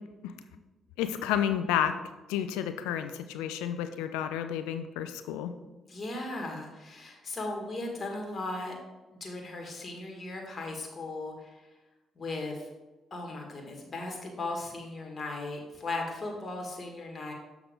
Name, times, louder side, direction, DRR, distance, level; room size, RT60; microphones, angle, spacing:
voice 1, 1.0-1.9 2.3-5.5, left 10 dB, 80° left, 9 dB, 0.5 m, -31 dB
voice 2, 5.9-8.8 9.2-11.5 12.2-12.6 13.1-17.3, left 2 dB, 40° left, 1 dB, 2.0 m, -37 dB
7.1 x 6.0 x 3.8 m, 1.1 s
hypercardioid pair, 50°, 0 cm